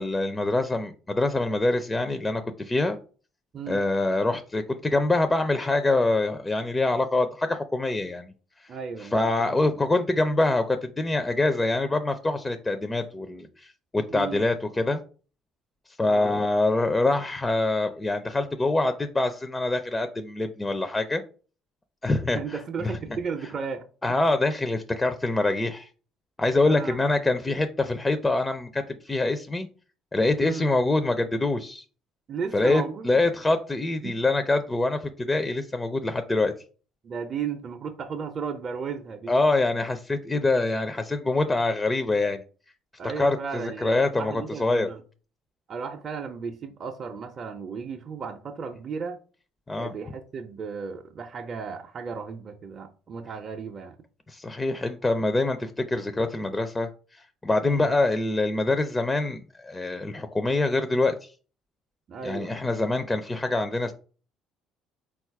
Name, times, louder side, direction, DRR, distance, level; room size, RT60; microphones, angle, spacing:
voice 1, 0.0-3.0 3.7-8.3 9.0-15.0 16.0-21.2 22.0-23.0 24.0-25.9 26.4-29.7 30.1-31.8 32.5-36.5 39.3-42.4 43.2-44.9 49.7-49.9 54.3-61.3 62.2-63.9, left 2 dB, 20° left, 0.4 m, -25 dB
voice 2, 8.7-9.6 14.1-14.5 16.0-16.3 22.3-23.9 26.6-27.0 30.4-30.7 32.3-33.3 34.0-34.2 37.0-39.4 43.0-45.0 45.7-49.2 49.8-54.0 57.6-57.9 62.1-62.5, right 6 dB, 45° right, 0.5 m, -35 dB
4.0 x 2.4 x 4.5 m
supercardioid pair, 80°, 0 cm